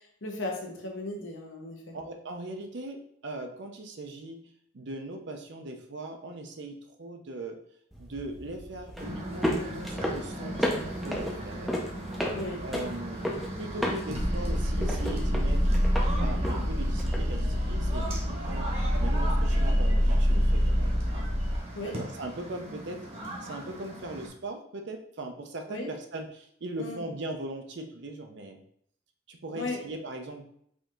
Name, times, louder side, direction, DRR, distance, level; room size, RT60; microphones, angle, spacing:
voice 1, 0.2-2.0 12.3-12.6 21.7-22.0 25.7-25.9 26.8-27.0 29.5-29.8, left 2 dB, 65° left, 1 dB, 1.0 m, -36 dB
voice 2, 1.9-4.4 4.7-7.6 8.0-11.8 12.6-15.7 16.2-18.7 19.0-21.0 21.8-23.1 23.4-28.6 29.3-30.4, right 2 dB, 55° right, 4 dB, 0.6 m, -39 dB
sound 1, 7.9-18.8, equal, ahead, 0.5 m, -35 dB
sound 2, 9.0-24.3, right 1 dB, 30° right, 1.0 m, -39 dB
sound 3, 14.1-21.6, equal, 75° right, 1.2 m, -26 dB
5.0 x 2.8 x 3.7 m, 0.67 s
head